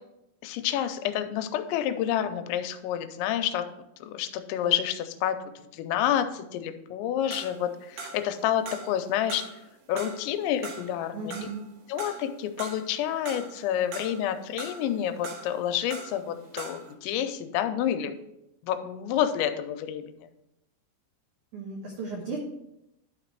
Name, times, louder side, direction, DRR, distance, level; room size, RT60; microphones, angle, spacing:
voice 1, 0.4-3.7 4.0-9.5 9.9-11.3 11.9-18.1 18.6-20.3, left 10 dB, 90° left, 8 dB, 2.9 m, -29 dB
sound 1, 7.3-8.4 8.7-9.6 10.0-12.9 13.3-14.3 14.6-16.2 16.5-16.9, right 4 dB, 75° right, 3.3 m, -41 dB
voice 2, 11.1-11.7 21.5-22.4, right 4 dB, 90° right, -1 dB, 1.7 m, -35 dB
12.0 x 4.0 x 4.5 m, 0.86 s
omnidirectional pair, 5.2 m